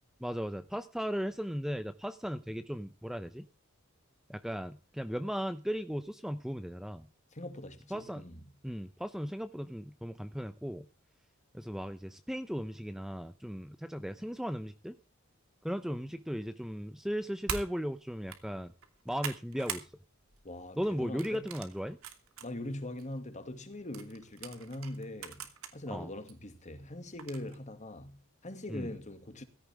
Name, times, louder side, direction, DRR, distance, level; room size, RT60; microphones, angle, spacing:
voice 1, 0.2-3.5 4.3-7.1 7.9-8.2 8.6-10.9 11.5-15.0 15.6-18.7 19.1-19.9 20.8-22.0 25.9-26.1 28.7-28.9, equal, ahead, 0.7 m, -36 dB
voice 2, 7.3-8.4 20.4-21.5 22.4-29.4, left 1 dB, 35° left, 2.2 m, -42 dB
sound 1, 17.5-17.7 18.2-18.4 18.8-19.9 20.3-20.5 21.2-22.5 23.0-23.1 23.9-25.7 26.3-26.4 27.2-27.5, right 7 dB, 85° right, 2.7 m, -41 dB
16.5 x 14.5 x 3.5 m
head